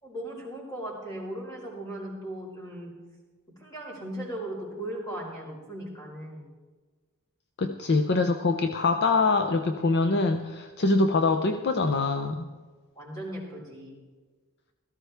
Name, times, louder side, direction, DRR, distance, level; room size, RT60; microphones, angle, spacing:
voice 1, 0.0-2.9 3.6-6.5 12.9-14.0, right 1 dB, 15° left, -4 dB, 4.7 m, -37 dB
voice 2, 7.6-12.5, left 3 dB, 50° left, 6 dB, 0.6 m, -24 dB
17.0 x 14.0 x 3.5 m, 1.4 s
head